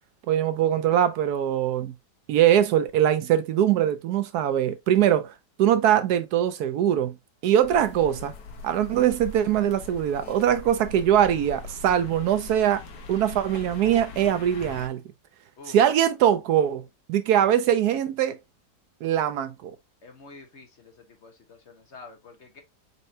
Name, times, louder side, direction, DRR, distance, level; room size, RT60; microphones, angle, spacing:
voice 1, 0.3-1.9 2.3-5.3 5.6-7.1 7.4-8.3 8.6-12.8 13.1-15.0 15.7-16.8 17.1-18.4 19.0-19.8, right 10 dB, 75° right, 1.1 m, -22 dB
sound 1, 7.6-14.9, left 4 dB, 70° left, 1.4 m, -41 dB
voice 2, 20.0-22.6, left 3 dB, 50° left, 1.1 m, -48 dB
4.4 x 4.3 x 2.6 m
omnidirectional pair, 1.8 m